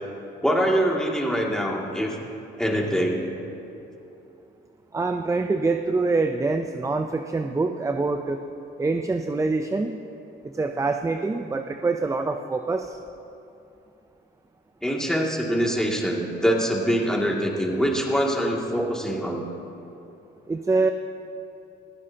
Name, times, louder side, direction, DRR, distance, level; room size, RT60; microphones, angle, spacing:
voice 1, 0.4-2.2 2.6-3.2 14.8-19.4, equal, 5° left, -2 dB, 2.3 m, -24 dB
voice 2, 4.9-8.4 8.8-9.9 10.4-13.0 20.5-20.9, right 3 dB, 15° right, 6 dB, 0.5 m, -25 dB
21.0 x 15.0 x 2.8 m, 2.9 s
cardioid pair, 90°, 20 cm